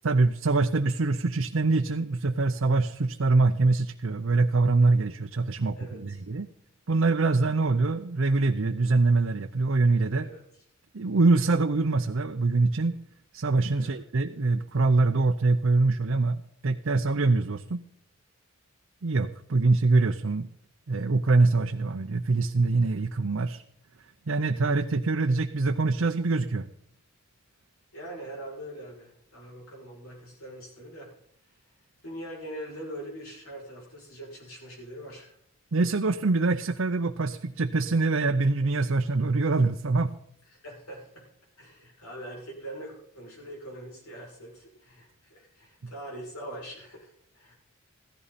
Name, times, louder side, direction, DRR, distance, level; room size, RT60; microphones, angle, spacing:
voice 1, 0.0-6.5 6.9-10.3 10.9-13.0 13.3-17.9 19.0-20.5 20.9-23.6 24.3-26.7 35.7-40.1, right 3 dB, 65° right, 6 dB, 0.6 m, -24 dB
voice 2, 5.7-6.2 10.2-10.4 13.7-14.0 27.9-31.1 32.0-35.4 40.5-41.3 41.6-47.6, right 1 dB, 85° left, -2 dB, 6.6 m, -42 dB
15.5 x 14.0 x 4.2 m, 0.71 s
head